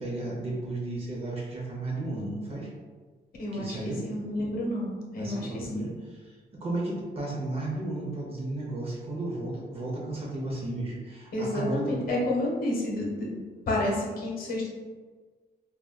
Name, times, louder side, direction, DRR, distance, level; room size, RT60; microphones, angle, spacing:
voice 1, 0.0-2.7 3.5-4.1 5.2-12.0, right 2 dB, 35° right, -3 dB, 0.6 m, -34 dB
voice 2, 3.4-3.8 4.0-5.7 11.3-13.4 13.7-14.7, left 1 dB, 60° left, -2 dB, 0.7 m, -30 dB
2.2 x 2.2 x 3.4 m, 1.4 s
wide cardioid pair, 170°, 17 cm